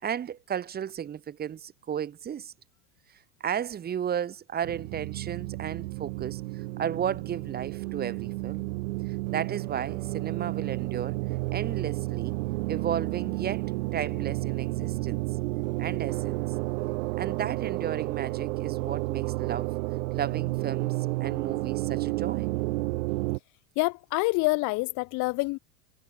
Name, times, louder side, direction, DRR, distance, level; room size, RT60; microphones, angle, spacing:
voice 1, 0.0-2.5 3.4-8.7 9.3-11.2 11.5-12.4 12.7-15.2 15.8-16.4 17.2-19.7 20.1-20.9 21.2-22.5, right 9 dB, 20° right, 3.3 m, -34 dB
sound 1, 4.6-23.4, right 22 dB, 65° right, 2.7 m, -31 dB
voice 2, 23.8-25.6, left 25 dB, 45° left, 1.9 m, -26 dB
supercardioid pair, 145°, 42 cm